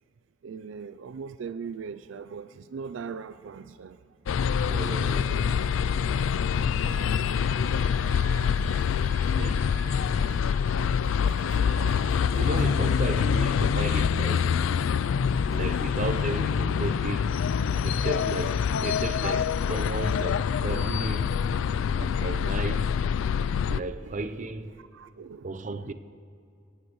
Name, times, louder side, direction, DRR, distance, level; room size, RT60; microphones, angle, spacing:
voice 1, 0.4-4.0 5.2-5.4 6.6-8.3 9.2-9.4 10.3-10.5 11.3-12.7 13.6-13.7 15.5-15.7 20.7-20.9 24.0-24.2 24.8-25.7, right 6 dB, 70° right, 0.4 m, -42 dB
sound 1, 4.3-23.8, left 7 dB, 80° left, 0.3 m, -25 dB
voice 2, 4.7-5.3 9.4-9.5 12.4-14.5 15.5-17.3 17.8-21.4 22.0-22.9 23.7-24.7 25.4-25.9, right 2 dB, 40° right, 0.7 m, -34 dB
Wind instrument woodwind instrument, 6.9-12.2, left 1 dB, 10° left, 0.6 m, -47 dB
26.5 x 17.5 x 3.1 m
head